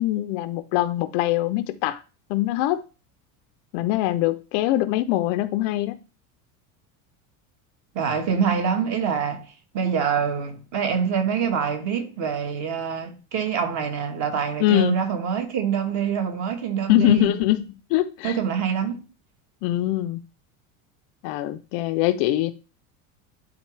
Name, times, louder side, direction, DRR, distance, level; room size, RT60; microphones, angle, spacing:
voice 1, 0.0-2.0 2.3-2.8 3.7-6.0 14.6-15.0 16.9-18.4 19.6-20.2 21.2-22.5, left 15 dB, 45° left, 0.4 m, -23 dB
voice 2, 7.9-17.4 18.2-19.0, right 7 dB, 40° right, 1.5 m, -25 dB
11.5 x 3.9 x 3.2 m
cardioid pair, 165°, 42 cm